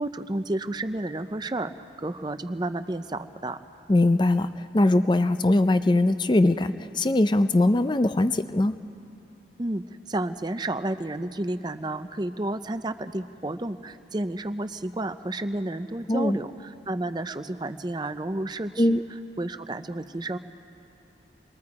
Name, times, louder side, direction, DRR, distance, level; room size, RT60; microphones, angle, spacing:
voice 1, 0.0-3.6 9.6-19.0 19.4-20.4, right 1 dB, 25° right, 10 dB, 0.6 m, -31 dB
voice 2, 3.9-8.8 16.1-16.4 18.8-19.0, left 2 dB, 25° left, 11 dB, 0.5 m, -21 dB
28.5 x 22.0 x 4.8 m, 2.7 s
head